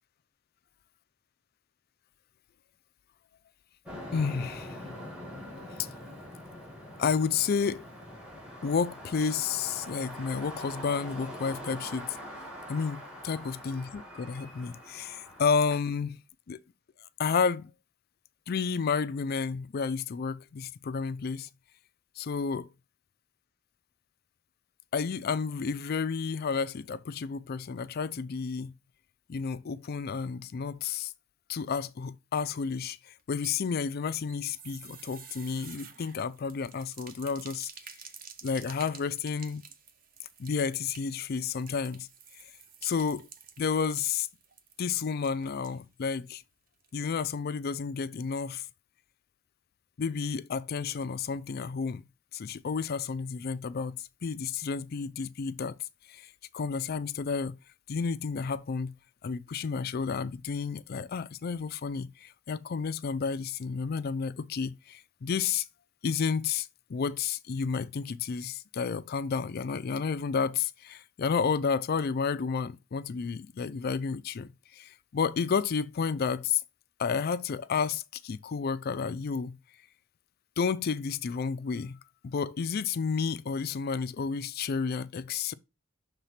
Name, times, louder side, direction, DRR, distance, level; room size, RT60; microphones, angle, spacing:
sound 1, 3.8-15.8, equal, 5° right, 2.0 m, -44 dB
voice 1, 4.1-4.8 7.0-7.9 8.6-12.2 12.7-16.2 16.5-16.6 17.2-17.7 18.5-21.5 22.2-22.7 24.9-28.7 29.3-31.1 31.5-37.7 38.4-39.7 40.4-42.1 42.8-43.3 43.6-44.3 44.8-46.4 46.9-48.6 50.0-52.0 52.3-54.0 54.2-55.8 56.1-57.5 57.9-58.9 59.2-65.6 66.0-76.6 77.0-79.5 80.6-82.0 82.2-85.5, left 5 dB, 50° left, 0.4 m, -31 dB
sound 2, 33.2-46.2 46.4-46.5 46.8-46.9, right 7 dB, 45° right, 0.9 m, -51 dB
5.7 x 3.6 x 5.7 m
head